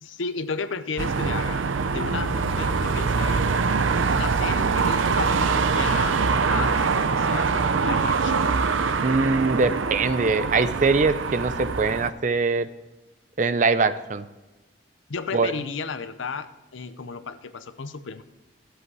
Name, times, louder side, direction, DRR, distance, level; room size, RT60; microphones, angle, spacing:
voice 1, 0.0-3.5 4.1-8.3 15.1-18.2, left 5 dB, 85° left, 11 dB, 0.7 m, -34 dB
sound 1, 1.0-12.1, right 4 dB, 90° right, 0.6 m, -24 dB
voice 2, 9.0-12.7 13.4-14.3 15.3-15.5, right 4 dB, 40° right, 13 dB, 0.5 m, -22 dB
14.0 x 8.1 x 4.7 m, 1.1 s
head